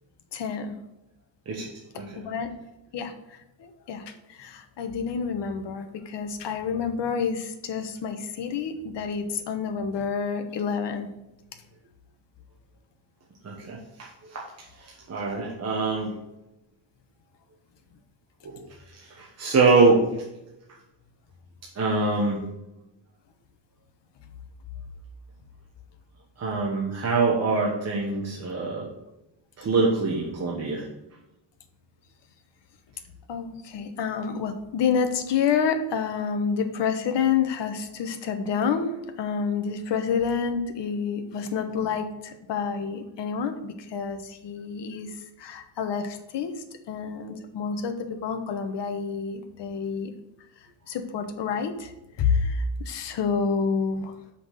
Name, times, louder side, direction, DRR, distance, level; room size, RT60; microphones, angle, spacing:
voice 1, 0.3-0.8 2.2-2.5 2.9-3.1 3.6-11.1 33.3-46.5 46.9-50.1 50.9-51.9 52.2-54.1, left 6 dB, 65° left, 7 dB, 1.1 m, -28 dB
voice 2, 1.5-2.1 13.4-16.1 18.4-18.6 18.9-20.0 21.7-22.4 26.4-28.9 29.6-30.8, right 3 dB, 35° right, -3 dB, 1.2 m, -24 dB
5.9 x 5.8 x 6.6 m, 0.93 s
wide cardioid pair, 175°, 45 cm